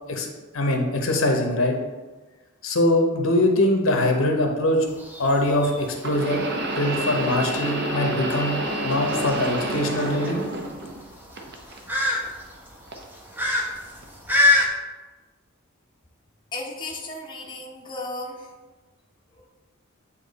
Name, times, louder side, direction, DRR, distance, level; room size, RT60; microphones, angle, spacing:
voice 1, 0.5-1.8 2.6-4.9 5.2-6.5 6.8-10.4, left 1 dB, 70° left, 2 dB, 0.8 m, -22 dB
sound 1, 3.9-4.0 6.0-11.0 11.4-12.2 12.9-13.1 14.0-14.1, right 1 dB, 50° right, 0.7 m, -29 dB
sound 2, 4.9-14.7, left 2 dB, 10° right, 0.7 m, -27 dB
voice 2, 16.5-18.5, left 2 dB, 20° left, -2 dB, 0.7 m, -34 dB
8.2 x 2.9 x 4.0 m, 1.2 s
head